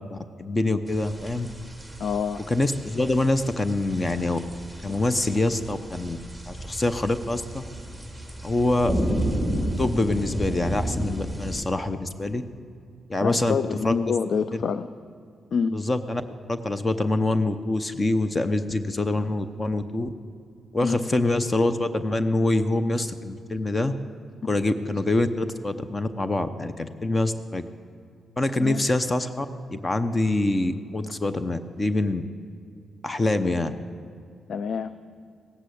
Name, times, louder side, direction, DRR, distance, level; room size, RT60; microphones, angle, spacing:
voice 1, 0.1-1.5 2.5-4.4 4.8-6.2 6.5-7.6 8.4-8.9 9.8-12.4 13.1-13.6 13.8-14.1 14.5-14.6 15.7-16.2 16.5-20.1 20.7-23.9 24.4-27.6 28.4-32.2 33.0-33.7, left 2 dB, 30° left, 11 dB, 0.7 m, -25 dB
sound 1, 0.9-11.6, equal, 5° left, 2.2 m, -32 dB
voice 2, 2.0-2.5 13.2-14.9 15.5-15.7 20.8-21.0 28.6-28.8 34.5-34.9, left 6 dB, 65° left, 13 dB, 0.4 m, -26 dB
17.0 x 7.7 x 8.4 m, 2.4 s
cardioid pair, 65°, 0 cm